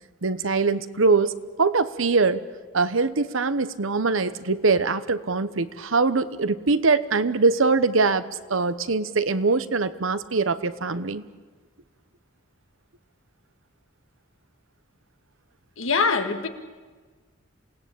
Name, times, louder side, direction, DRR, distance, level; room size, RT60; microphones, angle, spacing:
voice 1, 0.2-2.4 2.7-11.2, right 4 dB, 80° right, 14 dB, 1.0 m, -23 dB
voice 2, 15.8-16.5, left 4 dB, 80° left, 6 dB, 1.9 m, -23 dB
27.5 x 18.0 x 8.6 m, 1.4 s
head